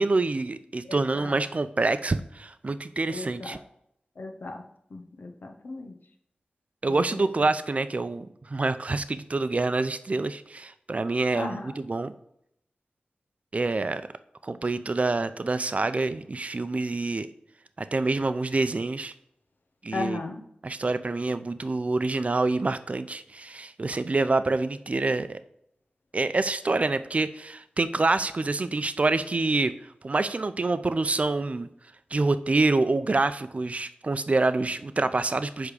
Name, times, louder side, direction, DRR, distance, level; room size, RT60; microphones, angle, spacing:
voice 1, 0.0-3.6 6.8-12.1 13.5-14.0 14.4-17.3 17.8-19.1 19.8-20.2 20.6-25.4 26.1-29.7 30.0-31.7 32.1-35.7, right 3 dB, 45° right, 12 dB, 0.5 m, -26 dB
voice 2, 0.8-1.4 3.1-3.6 4.2-4.6 4.9-5.9 6.9-7.5 11.3-11.8 19.9-20.5, left 3 dB, 80° left, 4 dB, 1.0 m, -36 dB
9.6 x 3.6 x 6.7 m, 0.76 s
wide cardioid pair, 65°, 3 cm